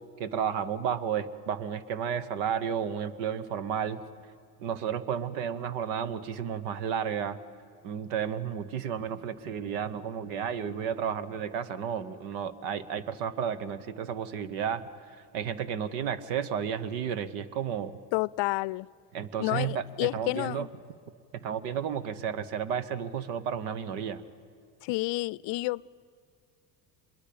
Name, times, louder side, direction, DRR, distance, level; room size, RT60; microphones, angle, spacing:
voice 1, 0.2-4.0 4.6-7.4 7.8-14.8 15.3-18.0 19.1-20.7 21.3-24.2, right 8 dB, 90° right, 1.1 m, -32 dB
voice 2, 18.1-18.9 19.4-20.7 24.8-26.0, left 21 dB, 65° left, 0.5 m, -30 dB
25.5 x 22.0 x 8.6 m
supercardioid pair, 80°, 47 cm